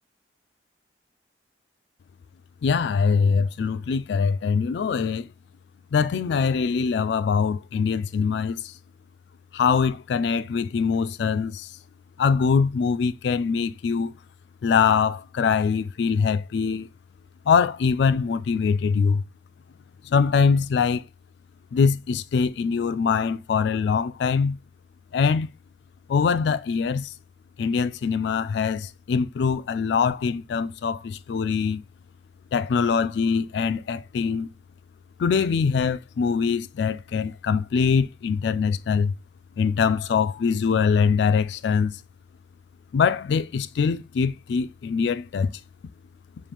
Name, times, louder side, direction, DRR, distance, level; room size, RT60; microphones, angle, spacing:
voice 1, 2.6-5.3 5.9-8.7 9.5-11.7 12.2-14.1 14.6-16.9 17.5-19.2 20.0-21.0 21.7-24.6 25.1-25.5 26.1-27.1 27.6-31.8 32.5-34.5 35.2-39.1 39.6-42.0 42.9-45.6, left 5 dB, 70° left, 0.3 m, -23 dB
6.9 x 2.4 x 2.9 m
head